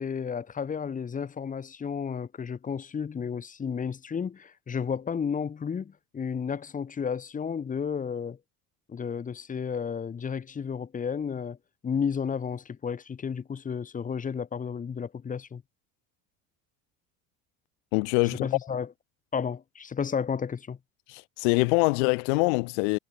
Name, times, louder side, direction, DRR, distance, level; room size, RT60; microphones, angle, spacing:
voice 1, 0.0-8.4 8.9-11.6 11.8-15.6 18.3-18.9 19.3-20.8, left 6 dB, 25° left, 5.1 m, -32 dB
voice 2, 17.9-18.5 21.1-23.0, left 34 dB, 85° left, 1.7 m, -24 dB
cardioid pair, 140°, 33 cm